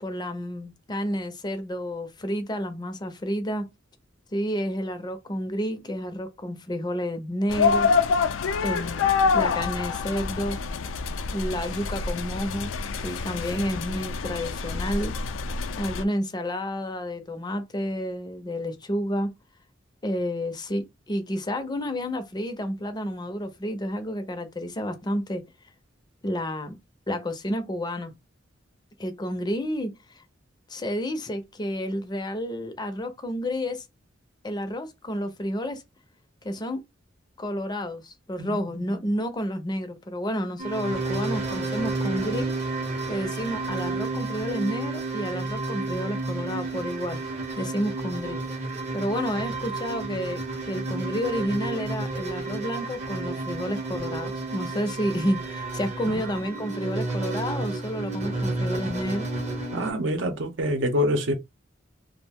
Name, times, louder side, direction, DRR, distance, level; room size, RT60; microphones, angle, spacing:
voice 1, 0.0-3.7 4.3-10.6 11.3-15.1 15.8-19.3 20.0-25.4 26.2-26.8 27.1-28.1 29.0-30.2 30.7-33.9 34.4-35.8 36.4-36.8 37.4-42.5 43.1-47.2 47.6-48.4 48.9-59.3, equal, 20° left, 0.5 m, -30 dB
sound 1, 7.5-16.0, left 5 dB, 85° left, 0.4 m, -26 dB
sound 2, 40.6-59.9, right 3 dB, 35° right, 0.7 m, -31 dB
voice 2, 59.7-61.3, equal, 70° right, 0.7 m, -26 dB
2.4 x 2.0 x 3.4 m
head